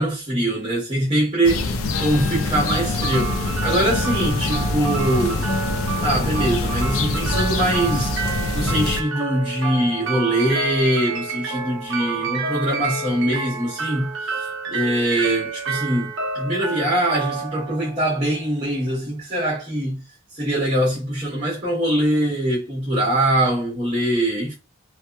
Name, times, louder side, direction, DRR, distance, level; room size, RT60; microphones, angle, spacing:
voice 1, 0.0-5.5 6.0-20.0 20.3-24.5, right 1 dB, 20° right, 0.9 m, -23 dB
sound 1, 1.4-9.0, left 3 dB, 70° left, 0.4 m, -24 dB
sound 2, 2.7-18.7, right 5 dB, 55° right, 0.5 m, -29 dB
2.8 x 2.0 x 2.2 m
head